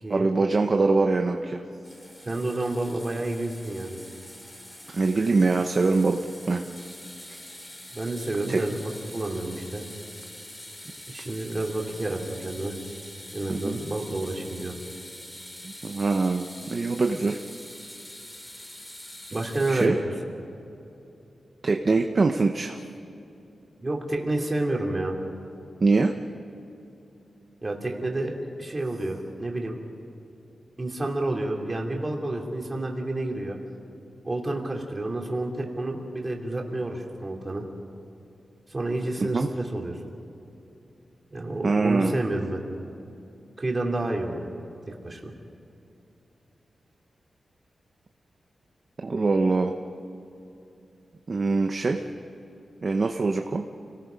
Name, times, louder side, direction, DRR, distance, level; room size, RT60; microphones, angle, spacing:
voice 1, 0.1-1.6 4.9-6.2 6.5-6.6 7.3-7.4 8.5-8.6 13.5-13.8 15.6-17.4 19.7-20.0 21.6-22.8 25.8-26.1 39.3-39.5 41.6-42.1 49.0-49.7 51.3-52.0 52.8-53.6, right 3 dB, 35° right, 3 dB, 0.9 m, -23 dB
sound 1, 1.8-19.9, left 1 dB, 20° left, 2.8 m, -44 dB
voice 2, 2.2-4.0 7.9-9.8 11.1-12.8 13.3-14.8 19.3-20.0 23.8-25.2 27.6-29.8 30.8-33.6 34.2-37.7 38.7-40.0 41.3-42.6 43.6-44.5 44.9-45.3, right 2 dB, 20° right, 0 dB, 3.0 m, -29 dB
30.0 x 19.0 x 5.3 m, 2.8 s
wide cardioid pair, 160°, 0 cm